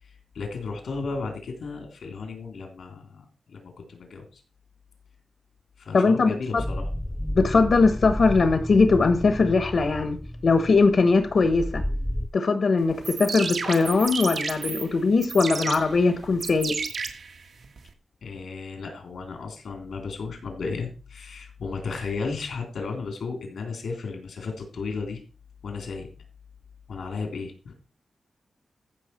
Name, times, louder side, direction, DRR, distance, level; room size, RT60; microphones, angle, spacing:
voice 1, 0.0-4.4 5.8-6.9 18.2-25.2 25.6-26.1 26.9-27.8, left 4 dB, 90° left, 3 dB, 3.5 m, -34 dB
voice 2, 5.9-6.6 7.3-10.2 10.4-11.8 12.3-16.7, left 4 dB, 55° left, 8 dB, 1.2 m, -20 dB
sound 1, 6.6-12.3, equal, 5° left, 0.4 m, -32 dB
sound 2, 12.9-17.9, right 5 dB, 70° right, 1.5 m, -33 dB
14.5 x 5.9 x 4.5 m, 0.35 s
wide cardioid pair, 160°, 0 cm